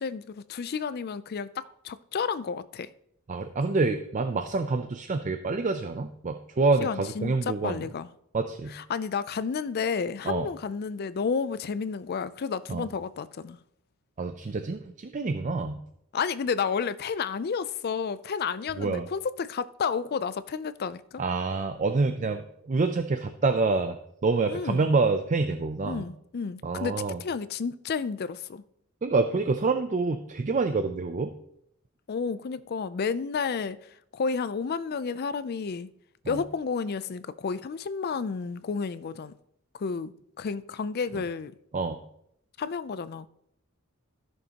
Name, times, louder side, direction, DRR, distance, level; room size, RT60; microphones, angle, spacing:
voice 1, 0.0-1.5 1.8-2.9 6.8-8.1 8.7-13.6 16.1-21.0 24.5-24.9 25.9-28.6 32.1-33.8 34.1-35.9 36.3-39.3 39.8-41.5 42.6-43.3, left 5 dB, 45° left, 0.4 m, -31 dB
voice 2, 3.3-7.9 8.3-8.8 10.2-10.5 12.7-12.9 14.2-15.8 18.8-19.1 21.2-26.1 26.6-27.2 29.0-31.3 36.2-36.4 41.1-41.2 41.7-42.0, right 3 dB, 35° right, 0.4 m, -27 dB
14.0 x 6.5 x 2.9 m
head